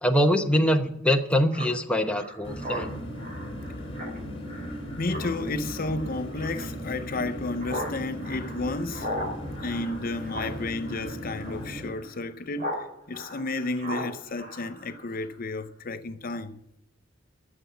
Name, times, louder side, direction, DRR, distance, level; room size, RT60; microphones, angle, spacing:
voice 1, 0.0-2.9, equal, 5° left, 0.9 m, -23 dB
Speech synthesizer, 1.5-12.8 13.1-15.3, equal, 40° right, 3.9 m, -39 dB
sound 1, 2.4-11.9, equal, 30° left, 3.8 m, -37 dB
voice 2, 5.0-9.1 9.6-16.6, left 2 dB, 45° left, 0.6 m, -32 dB
13.0 x 7.0 x 9.3 m
head